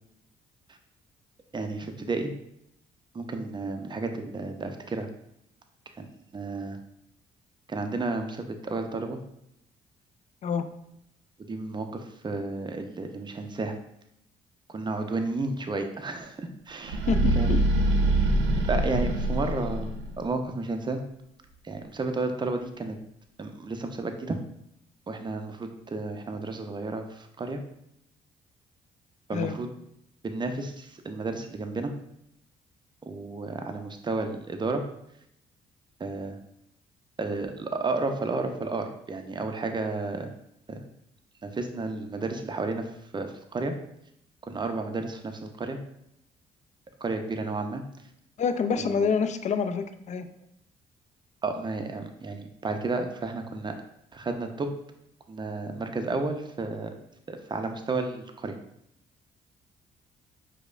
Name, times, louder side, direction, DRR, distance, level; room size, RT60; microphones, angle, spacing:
voice 1, 1.5-2.3 3.1-5.1 6.0-6.1 6.3-6.8 7.7-9.2 11.5-13.7 14.7-17.0 17.4-17.5 18.7-21.0 21.6-23.0 23.4-24.4 25.1-27.6 29.3-29.7 30.2-31.9 33.1-34.8 36.0-36.4 37.2-40.3 40.7-40.8 41.4-43.7 44.5-45.8 47.0-47.8 48.7-49.1 51.4-53.7 54.1-54.7 55.3-56.9 57.3-58.6, right 3 dB, 25° right, 6 dB, 0.5 m, -32 dB
sound 1, 16.8-20.1, right 2 dB, 80° right, 0.5 m, -24 dB
voice 2, 17.1-17.6 29.3-29.6 48.4-50.3, left 6 dB, 40° left, 9 dB, 0.4 m, -27 dB
4.7 x 2.1 x 2.5 m, 0.77 s
hypercardioid pair, 50°, 19 cm